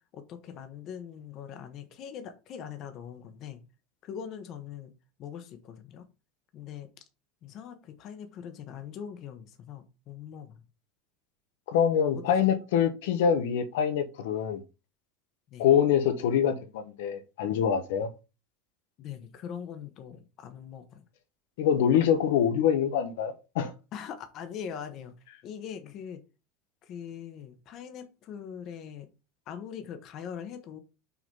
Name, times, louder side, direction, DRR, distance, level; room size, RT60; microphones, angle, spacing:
voice 1, 0.1-3.6 4.0-4.9 5.2-6.1 6.5-6.9 7.4-10.6 12.3-12.4 15.5-15.7 19.0-21.0 23.9-25.1 25.4-26.2 26.8-29.1 29.5-30.8, left 8 dB, 35° left, 1.0 m, -42 dB
voice 2, 11.7-14.6 15.6-18.1 21.6-23.7, left 8 dB, 80° left, 1.1 m, -25 dB
6.0 x 3.9 x 5.4 m
supercardioid pair, 165°, 0 cm